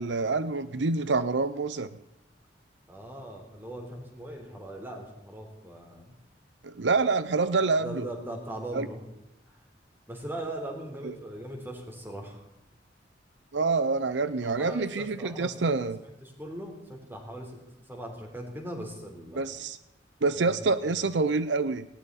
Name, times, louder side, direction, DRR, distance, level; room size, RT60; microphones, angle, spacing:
voice 1, 0.0-1.9 6.6-8.1 8.7-8.9 11.0-11.1 13.5-16.0 19.3-19.8 20.2-21.9, right 3 dB, 80° right, 14 dB, 0.7 m, -27 dB
voice 2, 2.9-6.2 7.8-9.0 9.5-9.6 10.1-12.5 14.4-15.9 16.2-17.6 17.9-19.5 20.3-20.6 20.9-21.1, right 1 dB, 10° right, 1 dB, 3.8 m, -40 dB
19.0 x 17.5 x 4.2 m, 0.88 s
head